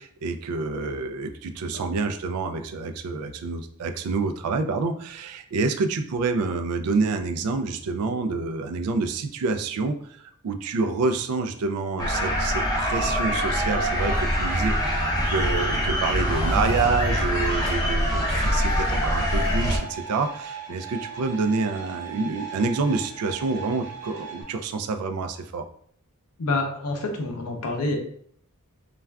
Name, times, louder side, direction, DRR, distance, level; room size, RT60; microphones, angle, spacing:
voice 1, 0.0-10.0 10.4-25.6, right 4 dB, 80° right, 7 dB, 0.3 m, -27 dB
sound 1, 12.0-19.8, equal, 20° left, 0.5 m, -24 dB
sound 2, 14.1-24.4, right 2 dB, 55° right, 1.0 m, -39 dB
voice 2, 26.4-28.0, left 2 dB, 85° left, 2 dB, 0.6 m, -27 dB
3.3 x 2.3 x 2.2 m, 0.63 s
head